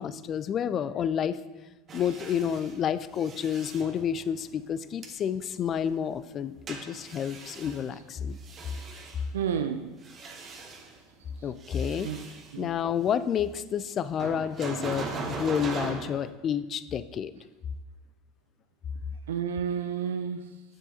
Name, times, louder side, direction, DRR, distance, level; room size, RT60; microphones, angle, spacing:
voice 1, 0.0-1.4 1.9-8.4 11.4-12.1 12.6-17.3, left 8 dB, 40° left, 14 dB, 0.3 m, -30 dB
sound 1, 1.9-4.5 5.0-5.1 6.7-9.3 9.9-11.2 11.6-12.6 14.2-16.3, right 4 dB, 35° right, 1.0 m, -39 dB
voice 2, 9.3-9.9 12.0-12.2 12.5-12.7 19.3-20.5, right 7 dB, 75° right, 8 dB, 0.3 m, -30 dB
7.4 x 7.1 x 2.8 m, 1.1 s
hypercardioid pair, 80°, 0 cm